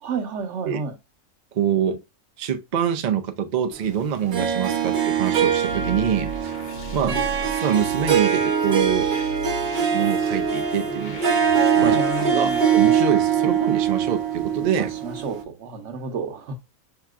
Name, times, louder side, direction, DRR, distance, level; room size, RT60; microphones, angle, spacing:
voice 1, 0.0-0.9 7.0-7.3 11.7-12.6 14.8-16.5, right 4 dB, 60° right, 1.1 m, -31 dB
voice 2, 1.5-2.0 2.4-6.5 6.9-7.2 7.5-9.1 9.9-14.9, right 8 dB, 80° right, 0.4 m, -25 dB
Harp, 4.3-15.4, right 7 dB, 45° right, 0.7 m, -22 dB
sound 1, 5.6-13.0, left 1 dB, 55° left, 0.8 m, -38 dB
5.5 x 2.9 x 2.4 m
omnidirectional pair, 1.4 m